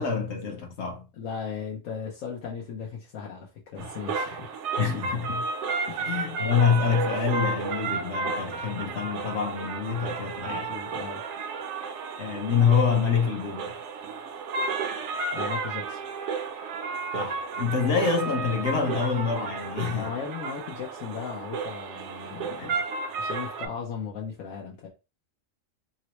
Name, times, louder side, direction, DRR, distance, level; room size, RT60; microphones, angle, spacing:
voice 1, 0.0-1.0 3.8-3.9 4.8-5.4 6.0-10.7 12.2-13.7 17.1-20.1 22.6-22.7, left 6 dB, 60° left, 1.1 m, -26 dB
voice 2, 1.1-4.5 5.9-6.2 10.4-11.2 15.3-16.0 19.9-22.6 23.2-24.9, left 6 dB, 85° left, 1.1 m, -37 dB
sound 1, 3.8-23.7, right 4 dB, 70° right, 0.8 m, -32 dB
3.8 x 2.1 x 2.9 m
omnidirectional pair, 1.3 m